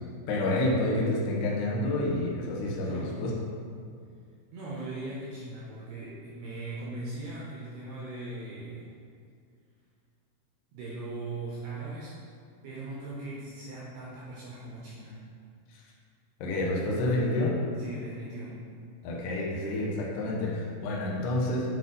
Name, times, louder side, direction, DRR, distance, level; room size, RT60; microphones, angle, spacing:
voice 1, 0.3-3.3 16.4-17.5 19.0-21.6, left 1 dB, 75° left, -3 dB, 2.5 m, -28 dB
voice 2, 4.5-8.9 10.7-12.2 12.6-15.2 17.8-18.6 21.2-21.4, right 2 dB, 80° right, -6 dB, 2.4 m, -39 dB
8.3 x 4.5 x 3.9 m, 2.3 s
omnidirectional pair, 5.8 m